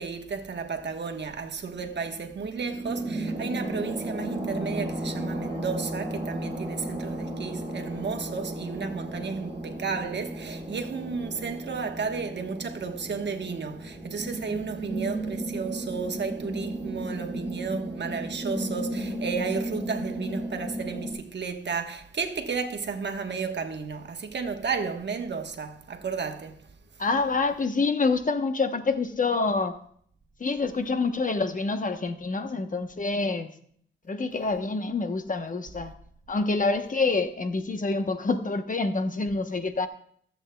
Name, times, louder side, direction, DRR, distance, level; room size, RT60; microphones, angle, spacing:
voice 1, 0.0-26.7, right 5 dB, 60° right, 1.2 m, -33 dB
sound 1, 1.7-21.1, right 1 dB, 30° right, 5.1 m, -34 dB
voice 2, 27.0-29.8 30.4-33.5 34.1-35.9 36.3-39.9, left 3 dB, 40° left, 1.0 m, -27 dB
24.0 x 8.2 x 2.3 m
wide cardioid pair, 95°, 20 cm